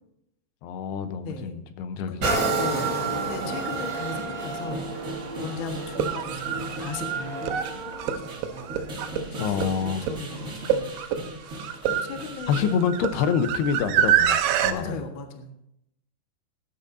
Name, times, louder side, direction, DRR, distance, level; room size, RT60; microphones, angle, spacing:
voice 1, 0.6-2.5 9.4-10.1 12.5-15.0, left 7 dB, 80° left, 9 dB, 2.9 m, -27 dB
sound 1, 2.2-9.8 10.4-10.5, right 3 dB, 35° right, 2.3 m, -31 dB
sound 2, 2.3-12.8, right 1 dB, 60° right, 0.7 m, -39 dB
voice 2, 2.5-5.1 5.4-8.8 9.0-10.9 11.8-12.7 14.7-15.5, left 3 dB, 60° left, 3 dB, 1.3 m, -37 dB
sound 3, 4.7-4.8 5.8-14.7, right 10 dB, 85° right, 2.9 m, -27 dB
19.5 x 11.0 x 2.7 m, 0.77 s
omnidirectional pair, 4.6 m